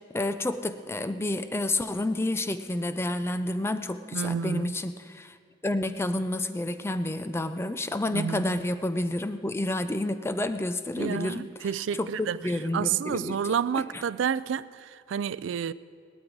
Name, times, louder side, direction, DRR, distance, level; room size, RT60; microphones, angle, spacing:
voice 1, 0.1-5.4 5.6-11.7 12.0-13.4 13.8-14.0, left 1 dB, 15° left, 0.4 m, -30 dB
voice 2, 4.1-4.8 8.1-8.5 11.0-12.4 12.7-15.7, right 7 dB, 90° right, 0.3 m, -30 dB
17.5 x 12.5 x 4.6 m
head